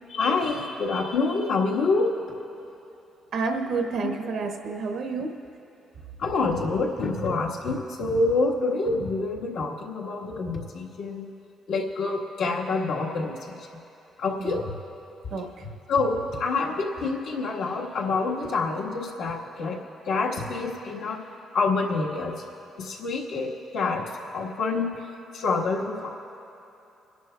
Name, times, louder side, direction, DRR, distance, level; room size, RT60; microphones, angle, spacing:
voice 1, 0.1-2.1 6.2-11.3 11.7-13.6 14.2-14.6 15.6-19.8 20.1-21.2 21.5-22.4 22.8-24.0 24.3-24.9 25.3-26.1, left 3 dB, 85° left, -3 dB, 1.4 m, -27 dB
voice 2, 3.3-5.3 14.4-14.6 15.3-15.5, right 4 dB, 75° right, 3 dB, 1.1 m, -29 dB
28.5 x 11.0 x 2.3 m, 2.9 s
cardioid pair, 90°, 0 cm